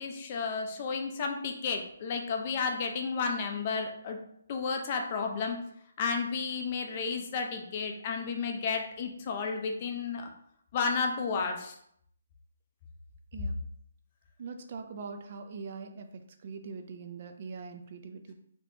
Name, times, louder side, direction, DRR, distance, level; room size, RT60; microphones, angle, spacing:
voice 1, 0.0-4.2 4.5-5.6 6.0-10.3 10.7-11.7, left 5 dB, 30° left, 3 dB, 0.4 m, -32 dB
voice 2, 14.4-18.3, right 4 dB, 40° right, 6 dB, 0.3 m, -42 dB
3.4 x 2.8 x 2.6 m, 0.70 s
hypercardioid pair, 170°, 0 cm